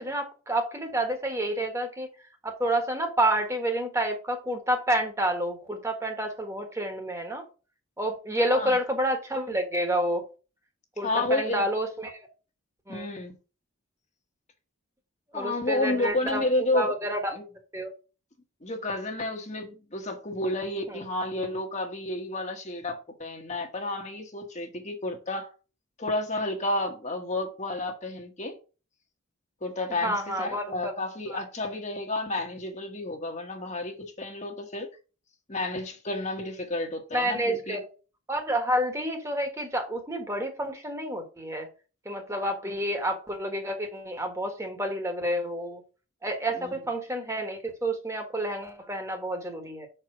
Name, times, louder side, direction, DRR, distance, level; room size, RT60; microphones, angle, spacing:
voice 1, 0.0-2.1 2.4-7.4 8.0-10.2 11.0-12.2 12.9-13.1 15.3-16.4 16.7-17.4 17.7-17.9 20.9-21.0 30.0-30.9 31.3-31.4 37.1-37.9 38.3-41.7 42.0-45.8 46.2-49.9, right 1 dB, 15° right, 1.3 m, -29 dB
voice 2, 11.0-11.7 12.9-13.3 15.3-16.9 17.3-17.4 18.6-25.5 26.0-28.6 29.6-34.9 35.5-37.8 46.6-46.7, left 2 dB, 35° left, 1.1 m, -31 dB
5.6 x 4.5 x 5.9 m
head